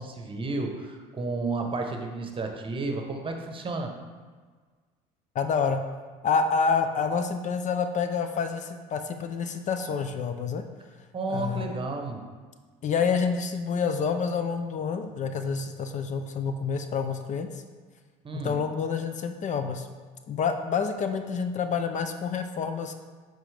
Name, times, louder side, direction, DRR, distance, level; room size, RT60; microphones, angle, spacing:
voice 1, 0.0-3.9 11.1-12.2 18.2-18.5, right 3 dB, 30° right, 3 dB, 1.0 m, -32 dB
voice 2, 5.3-5.8 6.2-10.6 11.3-11.7 12.8-17.6 18.3-19.9 20.3-22.9, left 5 dB, 45° left, 7 dB, 0.5 m, -28 dB
7.2 x 3.8 x 3.4 m, 1.5 s
supercardioid pair, 75°, 18 cm